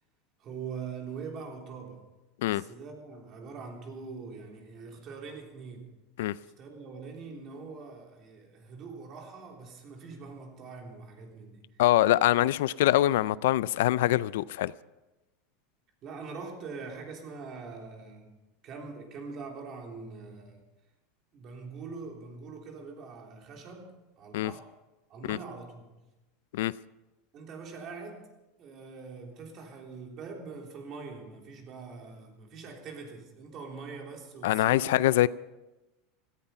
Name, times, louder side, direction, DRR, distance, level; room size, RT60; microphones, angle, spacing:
voice 1, 0.4-2.1 2.4-5.9 6.6-11.6 16.0-18.3 18.6-20.6 21.3-24.7 25.1-25.9 27.3-28.3 28.6-35.0, right 4 dB, 35° right, 3.4 m, -43 dB
voice 2, 11.8-14.7 24.3-24.5 25.3-25.4 26.5-26.7 34.4-35.3, left 14 dB, 85° left, 0.4 m, -24 dB
16.5 x 14.5 x 5.7 m
supercardioid pair, 155°, 0 cm